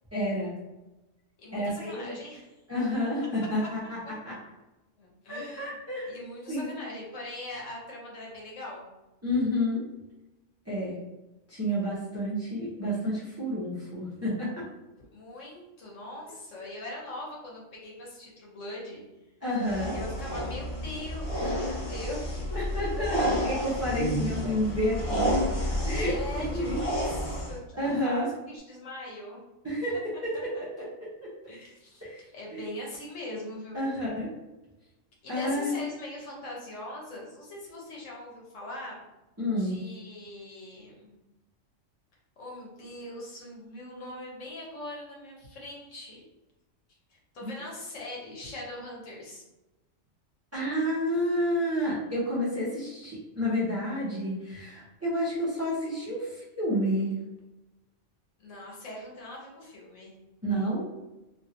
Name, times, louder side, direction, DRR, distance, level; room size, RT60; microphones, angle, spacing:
voice 1, 0.1-0.5 1.5-2.1 2.7-4.0 4.2-4.3 5.3-6.1 6.5-6.7 9.2-9.8 10.7-11.0 11.5-14.6 19.4-19.9 22.5-25.6 25.8-26.1 26.5-26.7 27.7-28.3 29.6-30.0 30.2-30.5 31.2-31.3 32.0-32.2 32.5-32.6 33.7-34.3 35.3-35.8 39.4-39.8 47.4-47.5 50.5-57.1 60.4-60.8, equal, 15° right, -10 dB, 0.6 m, -30 dB
voice 2, 1.4-2.5 3.6-3.7 4.0-4.3 5.0-5.7 6.1-8.9 15.1-19.0 19.9-22.4 22.7-23.0 25.9-29.4 30.5-30.6 31.5-32.0 32.3-33.9 35.2-39.0 39.6-41.2 42.4-46.2 47.1-49.4 58.4-60.1, left 1 dB, 75° left, -4 dB, 1.3 m, -41 dB
sound 1, 19.6-27.6, equal, 30° left, 0.8 m, -30 dB
2.8 x 2.7 x 2.6 m, 1.0 s
omnidirectional pair, 1.3 m